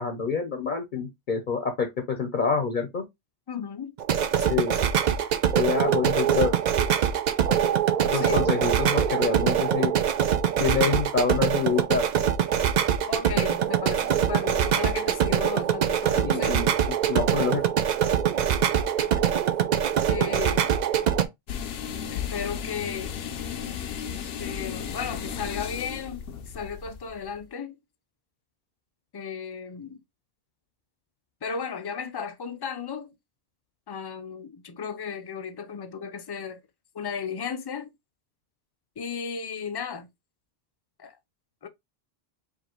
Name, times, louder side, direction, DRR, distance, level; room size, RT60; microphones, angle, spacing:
voice 1, 0.0-3.0 4.5-4.8 5.5-6.5 7.5-7.6 8.0-9.9 10.6-12.1 16.1-17.6, left 5 dB, 55° left, 0.9 m, -27 dB
voice 2, 3.5-4.0 4.3-4.9 8.1-8.5 13.1-16.7 20.1-20.7 22.1-23.2 24.4-27.8 29.1-30.0 31.4-33.1 33.9-36.6 36.9-37.9 39.0-40.1 41.0-41.2 41.6-41.7, left 6 dB, 40° left, 0.4 m, -35 dB
sound 1, 4.0-21.2, right 9 dB, 55° right, 0.5 m, -23 dB
sound 2, 21.5-27.4, left 8 dB, 80° left, 0.9 m, -34 dB
4.9 x 2.6 x 2.9 m
omnidirectional pair, 1.0 m